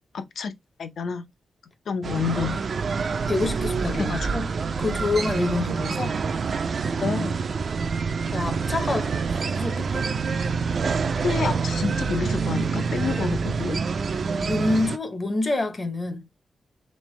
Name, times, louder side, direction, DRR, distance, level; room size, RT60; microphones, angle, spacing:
voice 1, 0.1-0.5 0.8-1.3 1.9-2.6 4.0-4.3 7.0-7.4 11.2-13.8, left 5 dB, 80° left, 0.6 m, -29 dB
sound 1, 2.0-15.0, right 5 dB, 55° right, 0.3 m, -26 dB
voice 2, 3.3-4.5 4.8-6.2 8.3-9.1 9.4-10.1 14.3-16.3, left 2 dB, 30° left, 0.6 m, -27 dB
3.6 x 3.2 x 3.1 m
wide cardioid pair, 160°, 0 cm